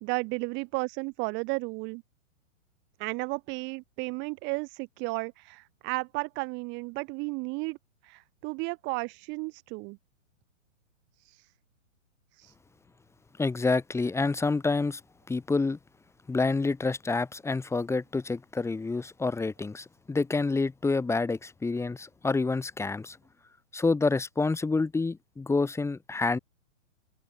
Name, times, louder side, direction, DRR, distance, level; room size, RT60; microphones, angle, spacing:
voice 1, 0.0-2.0 3.0-7.8 8.0-10.0 11.2-11.5 12.4-12.5, right 29 dB, 30° right, 1.2 m, -33 dB
voice 2, 13.4-15.0 15.3-15.8 16.3-23.2 23.7-26.4, left 3 dB, 5° left, 2.9 m, -28 dB
hypercardioid pair, 130°, 40 cm